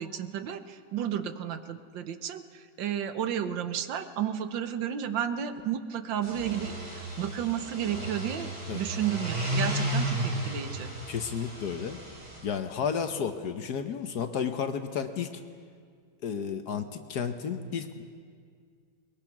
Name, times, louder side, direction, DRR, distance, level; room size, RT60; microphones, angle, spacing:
voice 1, 0.0-10.9, right 9 dB, 70° right, 10 dB, 1.6 m, -32 dB
sound 1, 6.1-12.4, right 1 dB, 55° right, 4.6 m, -33 dB
voice 2, 11.1-12.0 12.4-15.3 16.2-18.0, left 7 dB, 60° left, 8 dB, 1.3 m, -32 dB
21.5 x 21.5 x 6.0 m, 2.1 s
omnidirectional pair, 2.1 m